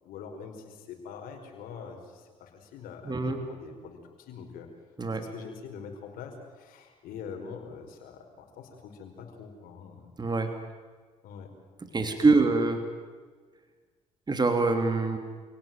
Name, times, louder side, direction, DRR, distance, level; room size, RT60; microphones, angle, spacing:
voice 1, 0.0-4.7 5.1-10.1 11.2-11.5 12.1-12.4, left 6 dB, 80° left, 3 dB, 5.1 m, -44 dB
voice 2, 3.0-3.4 5.0-5.2 10.2-10.5 11.9-12.8 14.3-15.2, right 3 dB, 30° right, 6 dB, 3.1 m, -24 dB
28.0 x 17.5 x 9.2 m, 1.5 s
supercardioid pair, 70°, 15 cm